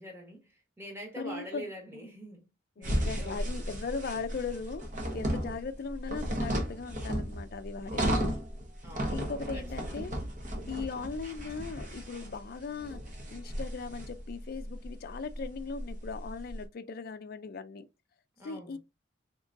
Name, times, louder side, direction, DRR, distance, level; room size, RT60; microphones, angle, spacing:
voice 1, 0.0-2.5 2.8-3.4 5.3-5.6 8.8-10.0 18.4-18.8, equal, 15° right, 1.2 m, -45 dB
voice 2, 1.1-1.7 1.9-2.1 2.8-8.3 9.1-10.1 10.7-13.0 13.3-17.9 18.4-18.8, left 4 dB, 50° left, 0.4 m, -39 dB
sound 1, 2.8-16.6, equal, 40° right, 0.9 m, -35 dB
3.8 x 2.9 x 2.5 m
head